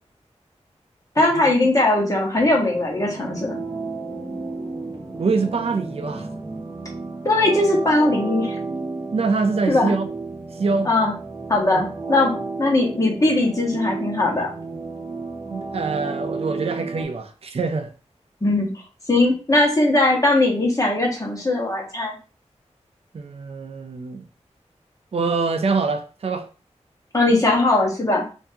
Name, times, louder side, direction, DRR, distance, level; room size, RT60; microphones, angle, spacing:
voice 1, 1.1-3.6 7.2-8.5 9.7-9.9 10.8-11.1 11.5-14.5 18.4-18.7 19.1-22.1 27.1-28.2, left 2 dB, 30° left, 1.3 m, -19 dB
sound 1, 2.3-17.0, right 3 dB, 35° right, 0.8 m, -32 dB
voice 2, 5.2-6.3 9.1-10.1 10.6-10.9 11.7-11.8 15.5-17.9 23.1-24.2 25.1-26.5, right 4 dB, 55° right, 0.5 m, -24 dB
4.4 x 2.7 x 2.7 m
wide cardioid pair, 95°, 12 cm